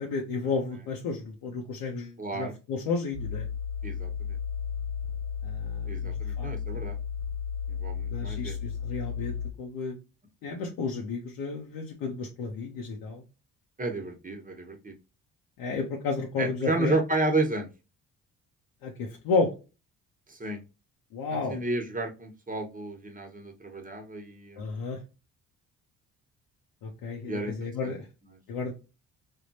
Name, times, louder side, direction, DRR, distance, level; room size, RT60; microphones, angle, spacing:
voice 1, 0.0-3.4 5.4-6.8 8.1-10.0 10.4-13.2 15.6-16.9 18.8-19.5 21.1-21.6 24.6-25.0 26.8-28.1 28.5-28.7, left 4 dB, 70° left, 0 dB, 0.8 m, -32 dB
voice 2, 2.2-2.5 3.8-4.4 5.9-7.0 7.7-8.6 10.4-10.6 13.8-14.9 16.4-17.7 20.3-20.6 21.3-24.7 27.3-27.5 27.8-28.0, right 2 dB, 20° right, 3 dB, 1.1 m, -32 dB
sound 1, 3.1-9.5, left 7 dB, 40° left, 0.9 m, -33 dB
3.5 x 2.4 x 2.7 m, 0.29 s
hypercardioid pair, 50°, 38 cm